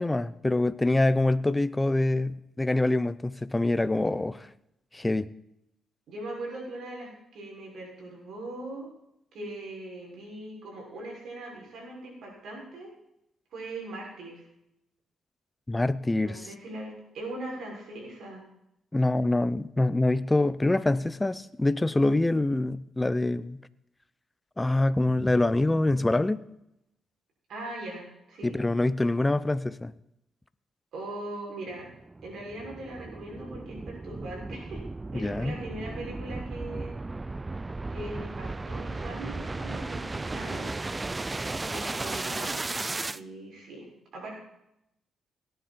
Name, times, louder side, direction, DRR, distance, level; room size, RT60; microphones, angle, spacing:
voice 1, 0.0-4.5 4.9-5.3 15.7-16.4 18.9-23.6 24.6-26.4 28.4-29.9 35.1-35.6, left 2 dB, 15° left, 0.7 m, -25 dB
voice 2, 3.9-4.2 6.1-8.9 9.3-12.9 13.5-14.4 16.2-18.4 27.5-28.6 30.9-31.9 32.2-34.8 35.1-36.9 37.9-40.7 41.7-42.6 43.1-44.4, right 1 dB, 75° right, 6.3 m, -40 dB
sound 1, 31.7-43.2, right 3 dB, 20° right, 0.4 m, -35 dB
18.0 x 10.5 x 4.4 m
cardioid pair, 80°, 0 cm